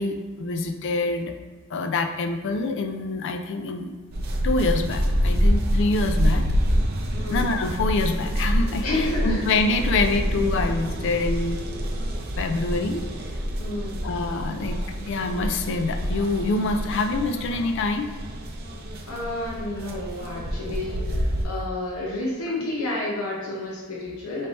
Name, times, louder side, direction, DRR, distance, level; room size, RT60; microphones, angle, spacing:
voice 1, 0.0-1.3 1.7-3.9 4.4-6.4 7.3-11.7 12.4-13.0 14.0-18.1, left 3 dB, 55° left, 6 dB, 0.3 m, -26 dB
sound 1, 4.1-21.5, equal, 45° right, 0.5 m, -27 dB
voice 2, 7.1-7.5 8.8-9.4 13.6-14.0 19.1-24.5, left 2 dB, 80° left, -4 dB, 0.8 m, -30 dB
3.2 x 2.7 x 4.3 m, 1.4 s
head